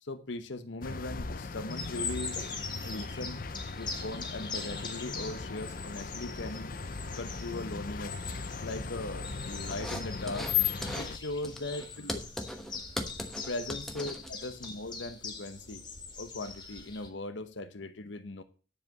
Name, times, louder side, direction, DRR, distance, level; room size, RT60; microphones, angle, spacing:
voice 1, 0.0-2.4 2.8-3.4 3.8-6.8 7.2-8.2 8.6-10.5 11.0-12.3 13.5-15.8 16.2-18.4, left 2 dB, 80° left, 1.0 m, -39 dB
sound 1, 0.8-11.2, left 6 dB, 50° left, 0.6 m, -37 dB
sound 2, 1.7-17.1, left 4 dB, 25° left, 2.1 m, -43 dB
sound 3, 9.7-10.6 10.8-11.1 11.4-14.7, equal, ahead, 1.1 m, -39 dB
10.0 x 5.1 x 8.0 m
head